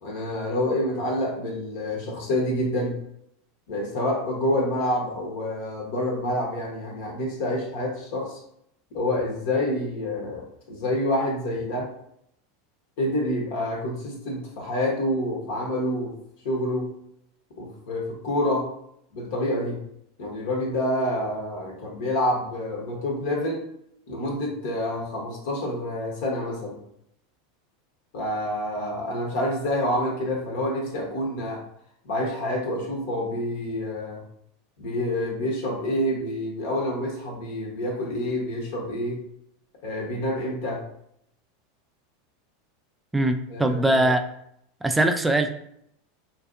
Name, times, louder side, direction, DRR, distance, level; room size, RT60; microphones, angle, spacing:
voice 1, 0.0-3.0 3.7-8.4 8.9-11.9 13.0-16.1 16.4-16.9 17.6-18.7 19.1-19.8 20.2-23.6 24.1-26.8 28.1-31.6 32.0-34.2 34.8-39.2 39.8-40.8 43.5-43.9, left 1 dB, 65° left, -1 dB, 0.9 m, -27 dB
voice 2, 43.1-44.2 44.8-45.5, right 1 dB, 10° right, 6 dB, 0.3 m, -21 dB
2.6 x 2.4 x 2.5 m, 0.73 s
hypercardioid pair, 90°, 0 cm